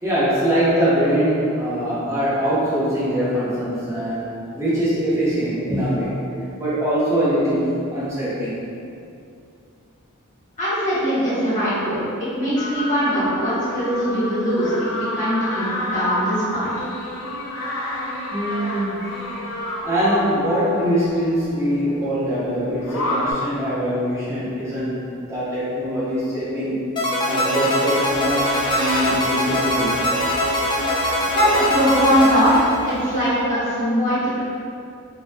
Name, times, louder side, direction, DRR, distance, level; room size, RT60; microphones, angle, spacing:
voice 1, 0.0-6.2 6.6-8.6 18.3-19.1 19.8-25.0 25.3-26.8 27.3-30.0, equal, 15° right, -10 dB, 0.8 m, -22 dB
voice 2, 10.6-16.7 31.3-34.4, equal, 35° left, -11 dB, 1.1 m, -21 dB
sound 1, 12.6-21.2 22.8-23.3, left 1 dB, 90° left, 0.5 m, -29 dB
sound 2, 27.0-33.3, left 1 dB, 20° left, 0.3 m, -22 dB
Squeak, 27.9-33.4, equal, 55° right, 0.6 m, -36 dB
2.3 x 2.1 x 3.2 m, 2.5 s
head